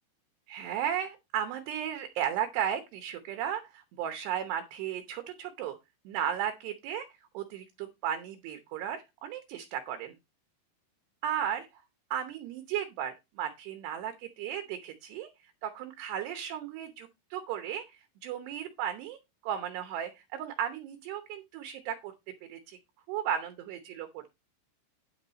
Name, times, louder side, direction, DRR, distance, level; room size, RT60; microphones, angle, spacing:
voice 1, 0.5-5.8 6.1-7.1 7.3-10.1 11.2-11.7 12.1-15.3 15.6-19.2 19.4-22.1 22.5-22.8 23.1-24.2, right 9 dB, 75° right, 8 dB, 2.7 m, -35 dB
9.9 x 7.2 x 4.0 m, 0.23 s
omnidirectional pair, 5.6 m